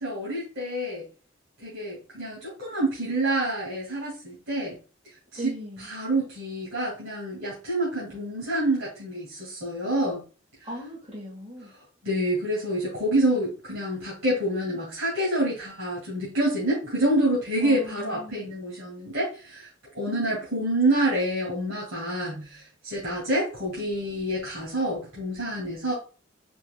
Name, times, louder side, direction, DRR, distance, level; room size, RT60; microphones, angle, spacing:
voice 1, 0.0-1.1 1.6-4.8 5.4-5.5 5.8-10.2 12.0-25.9, right 1 dB, 85° right, -5 dB, 2.1 m, -27 dB
voice 2, 5.4-5.9 10.6-11.7 17.6-18.4, equal, 35° right, -3 dB, 1.5 m, -38 dB
4.6 x 3.6 x 2.2 m, 0.36 s
head